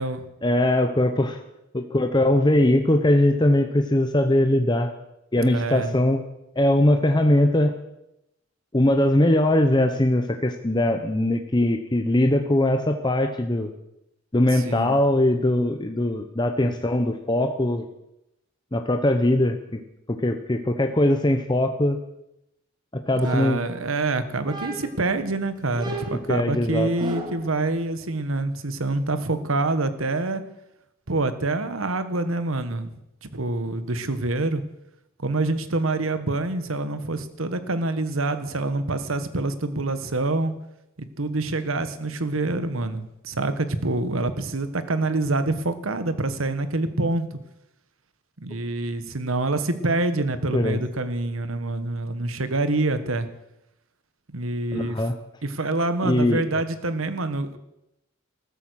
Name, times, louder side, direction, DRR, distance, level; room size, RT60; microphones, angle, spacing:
voice 1, 0.4-1.4 1.7-4.9 5.3-6.2 6.6-7.7 8.7-13.7 14.3-17.9 18.7-19.8 20.1-22.0 23.1-23.7 26.3-26.9 50.5-50.8 54.7-55.1 56.0-56.4, left 1 dB, 20° left, 6 dB, 0.9 m, -21 dB
voice 2, 5.4-6.0 14.5-14.9 23.2-30.4 31.1-32.9 33.2-34.6 35.2-40.5 41.0-47.4 48.4-53.3 54.3-55.0 55.4-57.6, right 2 dB, 90° right, 11 dB, 1.4 m, -26 dB
sound 1, 23.2-24.0 24.4-25.1 25.8-27.5, right 2 dB, 20° right, 3.1 m, -35 dB
14.5 x 13.5 x 6.4 m, 0.86 s
head